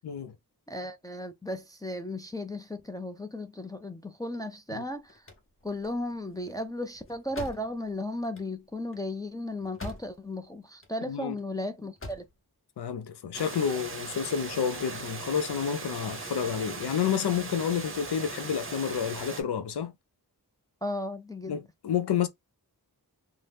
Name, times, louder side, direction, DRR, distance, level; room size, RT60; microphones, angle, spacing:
voice 1, 0.7-5.3 5.6-12.2 20.8-21.6, left 1 dB, 10° left, 0.4 m, -35 dB
sound 1, 5.0-10.4 10.7-11.4 11.8-12.4, left 2 dB, 35° left, 0.8 m, -45 dB
voice 2, 12.8-19.9 21.5-22.3, left 8 dB, 80° left, 0.5 m, -30 dB
Water, 13.3-19.4, right 4 dB, 35° right, 0.7 m, -39 dB
2.7 x 2.0 x 3.3 m
wide cardioid pair, 70°, 39 cm